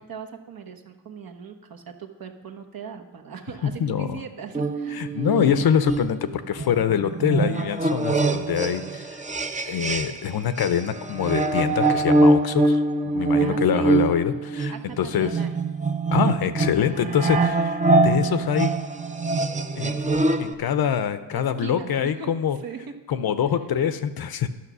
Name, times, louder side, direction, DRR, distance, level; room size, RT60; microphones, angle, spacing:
voice 1, 0.0-5.2 13.4-13.9 14.7-15.6 17.4-17.6 21.3-22.3 22.6-23.0, right 6 dB, 50° right, 4 dB, 1.1 m, -39 dB
voice 2, 3.6-4.2 4.9-9.2 9.7-15.3 16.1-18.7 19.8-22.6 23.1-24.5, left 8 dB, 55° left, 11 dB, 0.7 m, -25 dB
sound 1, 4.5-10.3 10.6-20.5, right 2 dB, 15° right, 0.7 m, -24 dB
11.0 x 6.0 x 6.1 m, 1.2 s
cardioid pair, 75°, 45 cm